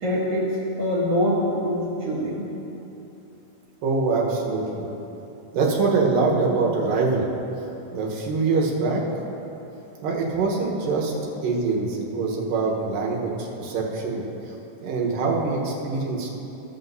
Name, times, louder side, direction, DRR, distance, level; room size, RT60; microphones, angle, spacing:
voice 1, 0.0-2.5, equal, 55° right, -7 dB, 2.4 m, -24 dB
voice 2, 3.8-4.9 5.5-7.3 7.9-9.0 10.0-14.2 14.8-16.3, right 4 dB, 80° right, -2 dB, 2.8 m, -24 dB
16.0 x 7.9 x 2.7 m, 3.0 s
omnidirectional pair, 4.0 m